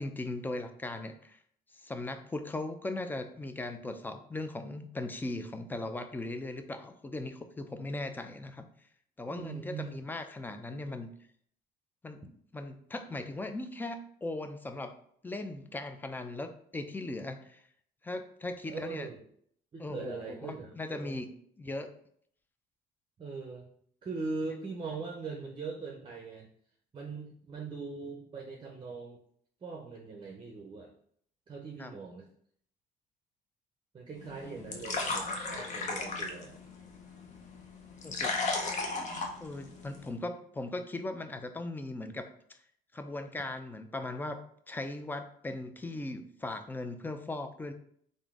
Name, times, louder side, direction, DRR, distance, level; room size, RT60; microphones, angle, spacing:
voice 1, 0.0-1.4 1.7-8.7 9.2-11.1 12.0-12.2 12.5-14.9 15.2-17.6 18.0-19.1 19.8-21.3 21.6-21.9 31.8-31.9 34.4-34.7 38.0-38.5 39.4-42.6 42.9-44.4 44.7-47.7, left 2 dB, 10° left, 7 dB, 0.4 m, -38 dB
voice 2, 9.3-10.0 18.7-19.2 19.7-21.3 23.2-23.7 24.0-26.5 26.9-29.2 29.6-30.9 31.5-32.3 33.9-36.6, right 4 dB, 30° right, 1 dB, 0.6 m, -41 dB
sound 1, 34.2-40.1, left 3 dB, 45° left, 0.7 m, -36 dB
3.6 x 2.6 x 3.6 m, 0.63 s
cardioid pair, 110°, 17 cm